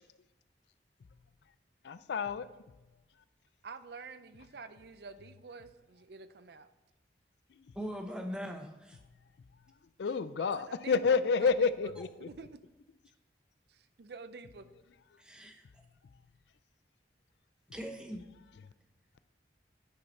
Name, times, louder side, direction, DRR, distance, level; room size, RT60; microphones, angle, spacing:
voice 1, 1.8-2.5 10.0-12.3, left 5 dB, 75° left, 0.4 m, -29 dB
voice 2, 3.6-6.7 10.4-11.9 12.2-12.6 13.7-14.6, right 4 dB, 65° right, 0.5 m, -48 dB
voice 3, 7.8-9.0 15.2-15.6 17.7-18.2, equal, 5° right, 0.8 m, -40 dB
9.7 x 5.6 x 4.1 m
head